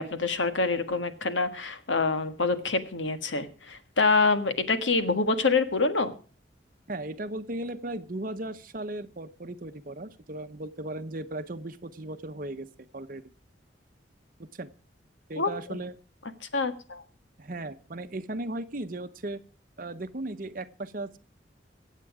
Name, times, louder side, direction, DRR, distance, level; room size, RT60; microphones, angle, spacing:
voice 1, 0.0-6.1 15.4-15.8 16.5-17.0, left 3 dB, 90° left, 10 dB, 1.6 m, -26 dB
voice 2, 6.9-13.2 14.5-14.7 15.3-15.9 17.4-19.4 19.8-21.2, right 2 dB, 50° right, 9 dB, 0.9 m, -36 dB
23.0 x 8.4 x 4.9 m, 0.38 s
head